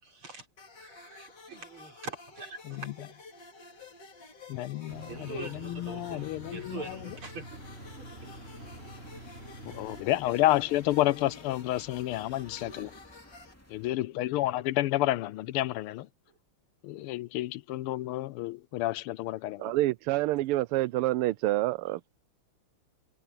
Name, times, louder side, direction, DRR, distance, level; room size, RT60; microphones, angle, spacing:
voice 1, 0.0-0.5 0.8-2.9 5.1-7.6 8.0-8.5 9.0-9.1 12.5-12.9, right 3 dB, 70° right, 6.4 m, -44 dB
sound 1, 0.6-13.5, left 3 dB, 50° left, 3.5 m, -51 dB
voice 2, 4.5-6.8 9.7-12.9 13.7-16.1 16.8-19.7, left 15 dB, 85° left, 1.5 m, -30 dB
Engine, 4.9-10.0, right 1 dB, 25° right, 8.4 m, -47 dB
sound 2, 7.5-13.9, left 1 dB, 5° left, 2.3 m, -54 dB
voice 3, 19.6-22.1, right 16 dB, 90° right, 1.5 m, -27 dB
omnidirectional pair, 2.4 m